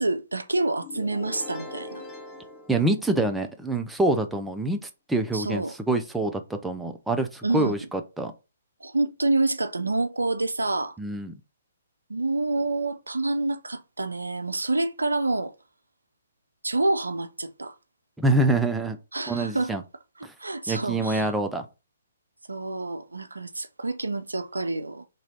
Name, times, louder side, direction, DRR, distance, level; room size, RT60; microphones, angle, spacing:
voice 1, 0.0-2.0 5.3-5.7 7.4-7.7 8.8-11.0 12.1-15.5 16.6-17.7 19.1-19.7 20.2-21.3 22.5-25.1, right 2 dB, 85° right, 0.4 m, -27 dB
sound 1, 0.8-3.6, left 2 dB, 20° left, 0.7 m, -42 dB
voice 2, 2.7-8.3 11.0-11.3 18.2-19.0 19.3-19.8 20.2-20.3 20.7-21.6, right 2 dB, 5° right, 0.4 m, -26 dB
3.0 x 2.7 x 4.2 m
figure-of-eight pair, 130°, 0 cm